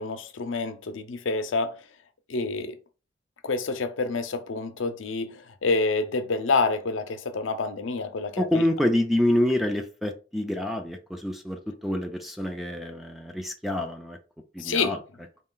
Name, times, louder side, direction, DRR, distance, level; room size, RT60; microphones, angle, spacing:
voice 1, 0.0-1.7 2.3-2.8 3.4-8.6 14.6-15.0, left 3 dB, 85° left, 0.6 m, -28 dB
voice 2, 8.4-14.2 14.5-15.0, left 1 dB, ahead, 0.4 m, -27 dB
4.2 x 2.4 x 3.7 m
head